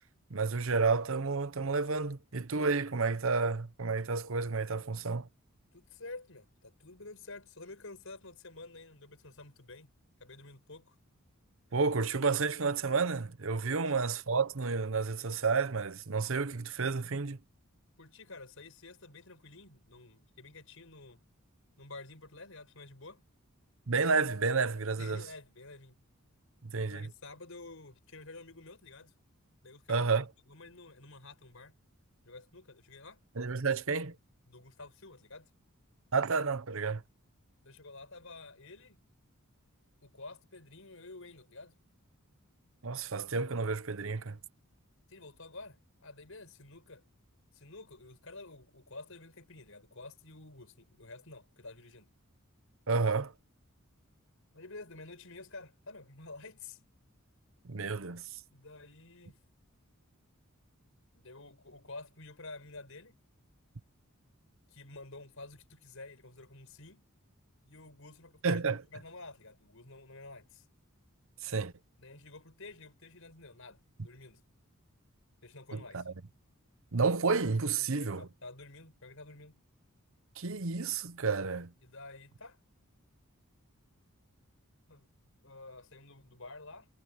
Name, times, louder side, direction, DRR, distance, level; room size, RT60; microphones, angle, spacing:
voice 1, 0.3-5.3 11.7-17.4 23.9-25.2 26.6-27.1 29.9-30.2 33.4-34.1 36.1-37.0 42.8-44.4 52.9-53.3 57.6-58.2 68.4-68.8 71.4-71.7 75.7-76.0 76.9-78.2 80.4-81.7, right 4 dB, 65° right, 0.9 m, -30 dB
voice 2, 5.7-9.9 10.2-11.0 13.7-13.9 18.0-21.2 21.8-23.2 25.0-26.0 26.7-29.1 29.6-31.8 32.2-33.2 34.5-35.5 37.6-39.0 40.0-41.8 45.1-47.0 47.5-52.1 54.5-56.8 58.5-59.4 61.1-63.2 64.7-67.1 67.6-68.6 68.9-70.7 72.0-74.4 75.4-76.2 77.7-79.6 81.8-82.6 84.9-85.1 85.4-86.9, left 3 dB, 65° left, 7.0 m, -50 dB
head